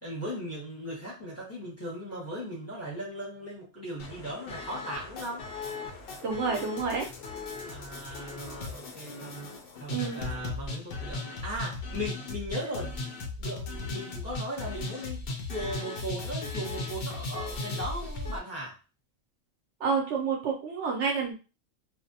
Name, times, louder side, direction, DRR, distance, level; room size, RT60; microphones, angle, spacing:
voice 1, 0.0-5.4 7.7-9.5 9.8-12.9 13.4-15.2 15.5-18.7, equal, 15° left, -5 dB, 0.8 m, -38 dB
sound 1, 4.0-18.4, left 3 dB, 60° left, 0.6 m, -37 dB
voice 2, 6.2-7.0 8.1-8.2 9.9-10.2 19.8-21.3, right 5 dB, 70° right, 1 dB, 0.8 m, -29 dB
2.5 x 2.0 x 2.6 m, 0.32 s
omnidirectional pair, 1.4 m